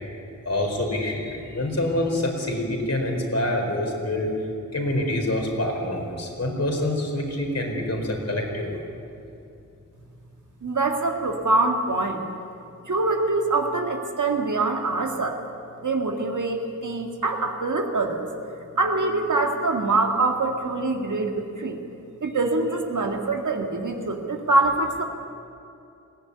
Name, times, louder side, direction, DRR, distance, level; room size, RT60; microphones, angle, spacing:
voice 1, 0.4-4.3 4.7-8.8, left 1 dB, 55° left, 1 dB, 4.5 m, -26 dB
voice 2, 10.6-12.2 12.9-15.4 15.8-18.3 18.7-21.8 22.2-25.0, right 3 dB, 75° right, 3 dB, 2.1 m, -24 dB
20.5 x 16.0 x 9.8 m, 2.7 s
wide cardioid pair, 85°, 30 cm